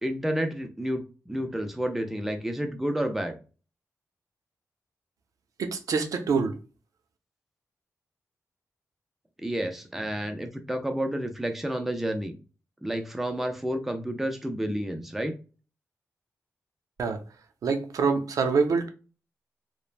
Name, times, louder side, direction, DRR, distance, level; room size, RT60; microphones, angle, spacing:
voice 1, 0.0-3.4 9.4-12.4 12.8-15.4, right 1 dB, 5° right, 0.4 m, -30 dB
voice 2, 5.6-6.6 17.0-17.2 17.6-18.9, right 5 dB, 85° right, 0.5 m, -25 dB
3.1 x 2.1 x 2.4 m
wide cardioid pair, 170°, 6 cm